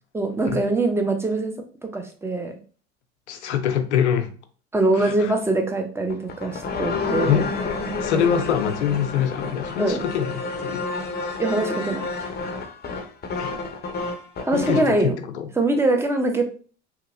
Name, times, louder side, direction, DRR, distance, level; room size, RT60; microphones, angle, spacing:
voice 1, 0.1-1.5 1.8-2.5 4.7-7.4 8.1-8.2 9.8-10.0 11.4-12.0 14.4-15.1 15.6-16.4, right 2 dB, 10° right, 0.6 m, -23 dB
voice 2, 3.3-4.3 4.9-5.3 7.2-7.5 7.8-10.9 13.4-13.6 14.5-15.5, left 8 dB, 90° left, 0.5 m, -24 dB
sound 1, 6.1-15.0, left 4 dB, 30° left, 0.6 m, -29 dB
2.9 x 2.7 x 2.5 m
hypercardioid pair, 75°, 33 cm